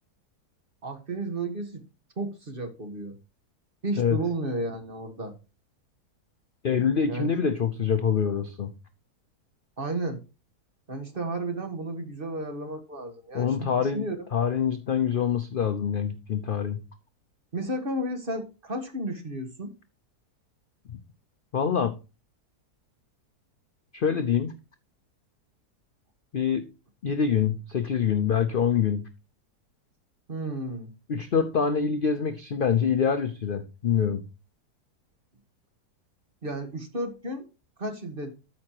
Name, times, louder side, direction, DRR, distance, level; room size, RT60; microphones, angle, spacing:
voice 1, 0.8-1.8 2.2-3.2 3.8-5.3 7.1-7.3 9.8-10.2 10.9-14.2 17.5-19.7 30.3-30.9 36.4-37.5 37.8-38.3, right 2 dB, 35° right, 6 dB, 1.6 m, -33 dB
voice 2, 6.6-8.7 13.3-14.1 14.3-16.8 20.9-21.0 21.5-21.9 23.9-24.5 26.3-26.6 27.0-29.0 31.1-34.2, left 7 dB, 55° left, 9 dB, 0.6 m, -25 dB
13.0 x 5.8 x 2.9 m, 0.30 s
omnidirectional pair, 1.7 m